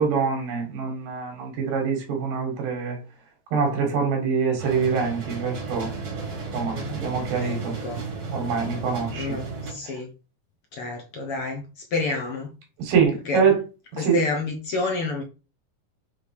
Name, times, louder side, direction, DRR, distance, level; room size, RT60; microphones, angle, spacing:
voice 1, 0.0-3.0 3.5-5.9 6.5-7.7 8.3-9.3 9.8-9.9 12.8-13.6 14.0-14.2, right 6 dB, 80° right, 3.5 m, -24 dB
sound 1, 4.6-9.7, right 4 dB, 55° right, 3.8 m, -34 dB
voice 2, 7.4-8.0 9.1-10.1 10.7-11.6 11.9-12.5 13.3-13.4 14.0-15.2, left 3 dB, 65° left, 1.5 m, -29 dB
7.0 x 3.5 x 4.7 m
omnidirectional pair, 3.8 m